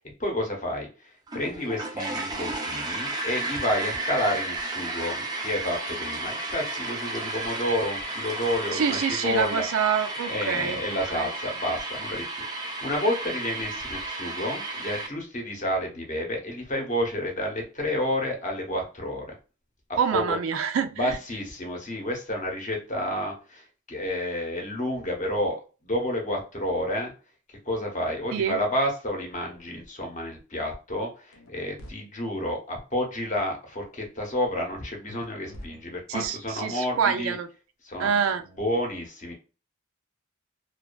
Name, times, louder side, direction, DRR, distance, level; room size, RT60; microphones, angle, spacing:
voice 1, 0.2-0.9 1.3-9.6 10.3-19.3 19.9-20.4 21.0-25.6 25.8-27.1 27.7-37.4 37.8-38.2 38.6-39.3, left 1 dB, 40° left, 0.8 m, -30 dB
sound 1, 1.3-15.1, right 2 dB, 20° right, 0.5 m, -33 dB
voice 2, 8.7-10.8 11.1-11.3 20.0-21.2 28.3-28.6 36.1-37.5 38.0-38.4, right 7 dB, 80° right, 0.4 m, -26 dB
sound 2, 31.3-31.9 35.1-36.3, left 1 dB, 85° left, 0.5 m, -45 dB
2.5 x 2.3 x 2.2 m
head